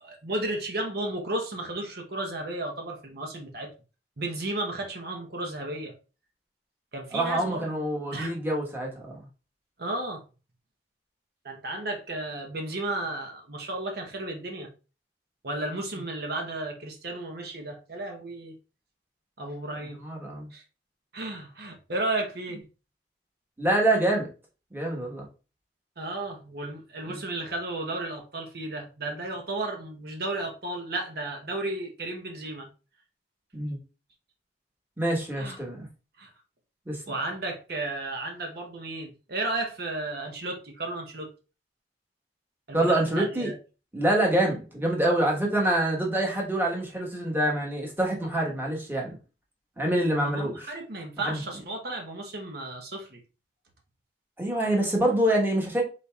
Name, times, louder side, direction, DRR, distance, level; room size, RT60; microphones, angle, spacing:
voice 1, 0.0-3.7 4.2-5.9 6.9-7.7 8.1-8.4 9.8-10.2 11.4-14.7 15.4-18.5 19.4-20.0 20.5-20.6 21.1-22.6 26.0-32.7 35.4-35.6 36.2-36.3 37.0-41.3 42.7-43.6 50.1-53.2, right 2 dB, 60° right, 1.0 m, -33 dB
voice 2, 7.1-9.2 20.0-20.5 23.6-24.3 24.7-25.3 27.0-27.2 33.5-33.8 35.0-35.9 36.9-37.0 42.7-43.5 43.9-49.2 49.8-50.7 51.2-51.4 54.4-55.8, right 1 dB, 10° right, 1.3 m, -26 dB
5.1 x 4.1 x 2.4 m
head